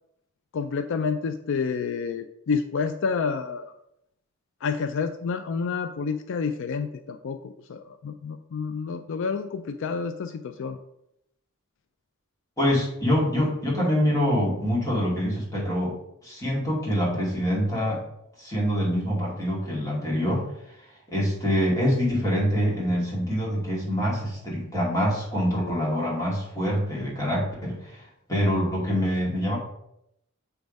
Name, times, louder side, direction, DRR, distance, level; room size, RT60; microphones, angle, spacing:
voice 1, 0.5-3.7 4.6-10.8, left 5 dB, 65° left, 9 dB, 0.4 m, -29 dB
voice 2, 12.6-15.9 16.2-18.0 18.4-20.5 21.1-28.0 28.3-29.6, equal, 15° left, -4 dB, 2.3 m, -25 dB
7.0 x 3.5 x 5.2 m, 0.80 s
head